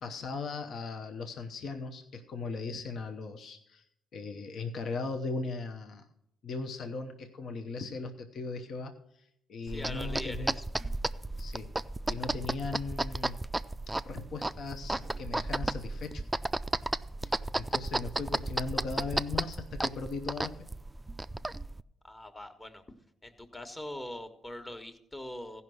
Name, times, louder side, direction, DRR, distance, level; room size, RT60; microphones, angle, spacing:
voice 1, 0.0-3.8 4.1-6.0 6.4-10.6 11.4-11.7 12.1-13.4 14.0-16.2 17.2-20.7, left 4 dB, 60° left, 6 dB, 0.9 m, -38 dB
voice 2, 9.7-10.7 22.0-22.8 23.2-25.6, left 1 dB, 25° left, 7 dB, 1.4 m, -42 dB
sound 1, 9.7-21.8, right 2 dB, 15° right, 0.4 m, -34 dB
15.0 x 5.6 x 6.3 m, 0.77 s
supercardioid pair, 70°, 0 cm